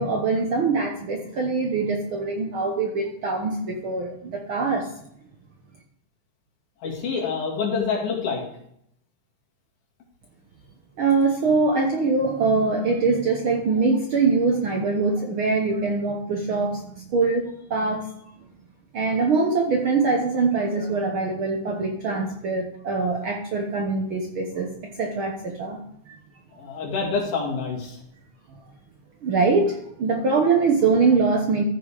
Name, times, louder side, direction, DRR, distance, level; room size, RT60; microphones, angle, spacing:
voice 1, 0.0-4.9 11.0-18.1 18.9-24.7 25.0-25.8 26.1-26.2 28.5-28.6 29.2-31.6, right 4 dB, 60° right, 1 dB, 1.4 m, -23 dB
voice 2, 6.8-8.4 26.6-28.0, left 5 dB, 75° left, -2 dB, 3.9 m, -27 dB
14.5 x 5.4 x 4.9 m, 0.72 s
omnidirectional pair, 3.5 m